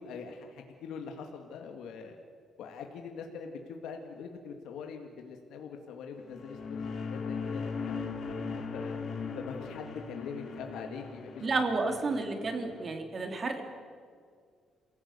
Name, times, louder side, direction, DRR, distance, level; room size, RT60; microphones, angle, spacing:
voice 1, 0.0-2.2 2.6-9.0 9.3-11.5 11.8-11.9, left 6 dB, 85° left, 3 dB, 2.1 m, -43 dB
sound 1, 6.3-12.9, left 5 dB, 60° left, 3.6 m, -38 dB
voice 2, 11.4-13.6, right 3 dB, 40° right, 5 dB, 3.3 m, -31 dB
28.0 x 17.0 x 6.8 m, 2.1 s
cardioid pair, 90°, 0 cm